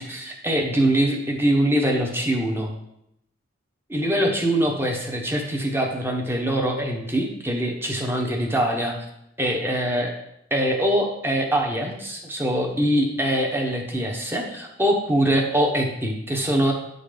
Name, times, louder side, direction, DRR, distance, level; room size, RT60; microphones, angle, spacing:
voice 1, 0.0-2.7 3.9-8.9 9.4-10.1 10.5-16.7, right 1 dB, 10° right, 1 dB, 1.0 m, -23 dB
9.5 x 4.0 x 5.1 m, 0.79 s
head